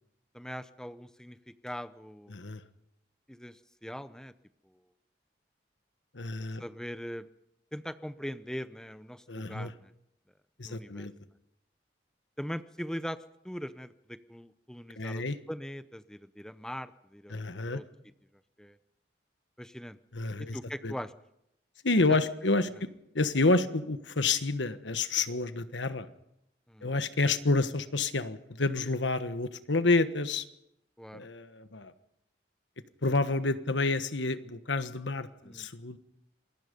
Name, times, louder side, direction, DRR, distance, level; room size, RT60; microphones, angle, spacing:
voice 1, 0.3-1.4 1.6-2.3 3.3-4.3 4.6-4.8 6.6-7.3 7.7-9.9 10.6-11.1 12.4-13.2 13.4-17.8 18.6-18.8 19.6-20.0 20.4-21.1 22.1-22.2 26.7-26.9 31.0-31.3 35.4-35.7, equal, 5° left, 12 dB, 0.7 m, -41 dB
voice 2, 2.3-2.6 6.1-6.6 9.3-9.7 10.6-11.1 15.0-15.4 17.3-17.8 20.1-20.6 20.8-20.9 21.8-22.9 23.1-26.1 26.8-30.5 31.1-31.9 33.0-36.0, left 3 dB, 85° left, 11 dB, 1.3 m, -29 dB
27.0 x 21.5 x 5.3 m, 0.82 s
head